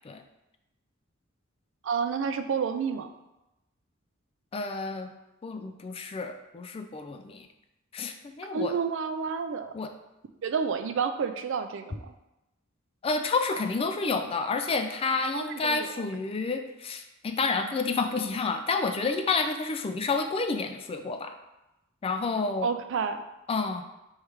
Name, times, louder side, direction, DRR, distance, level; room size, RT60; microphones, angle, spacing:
voice 1, 1.8-3.1 8.5-9.7 10.4-12.0 15.3-15.9 22.6-23.2, right 6 dB, 65° right, 8 dB, 0.4 m, -29 dB
voice 2, 4.5-5.1 5.4-7.5 7.9-8.8 9.7-9.9 13.0-21.3 22.0-22.7 23.5-23.8, left 4 dB, 30° left, 7 dB, 0.3 m, -29 dB
3.3 x 3.1 x 4.8 m, 0.94 s
head